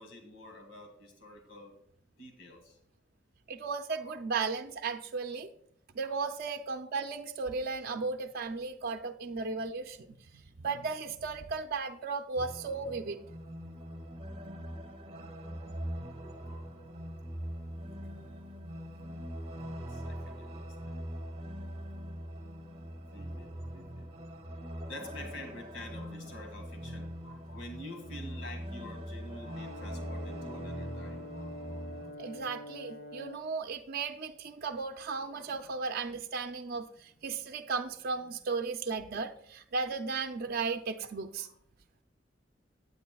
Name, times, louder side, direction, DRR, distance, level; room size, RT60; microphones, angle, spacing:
voice 1, 0.0-1.8 2.2-2.8 3.9-4.2 6.0-6.2 16.4-16.6 19.9-21.0 23.1-24.1 24.7-31.5 35.3-35.8 41.4-41.5, left 1 dB, 90° left, 2 dB, 2.0 m, -48 dB
voice 2, 3.5-5.5 5.9-10.1 10.3-13.2 32.2-41.5, right 4 dB, 55° right, 6 dB, 0.5 m, -35 dB
sound 1, 12.4-32.1, equal, 30° right, 1.1 m, -42 dB
Brass instrument, 29.3-33.5, left 1 dB, 60° left, 1.1 m, -46 dB
15.5 x 9.3 x 2.3 m, 0.73 s
head